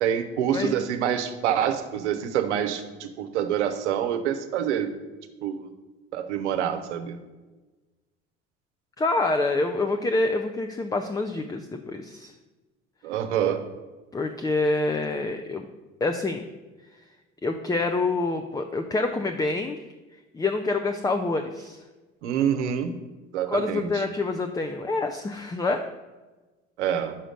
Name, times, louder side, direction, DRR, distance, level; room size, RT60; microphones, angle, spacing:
voice 1, 0.0-4.9 5.4-5.7 6.1-7.2 13.0-13.6 22.2-23.0 23.3-23.9 26.8-27.2, right 9 dB, 80° right, 9 dB, 0.7 m, -26 dB
voice 2, 9.0-12.3 14.1-15.7 16.0-16.5 17.4-19.8 20.3-21.8 23.5-25.9, left 3 dB, 10° left, 6 dB, 0.4 m, -26 dB
5.7 x 5.0 x 6.5 m, 1.2 s
hypercardioid pair, 65°, 34 cm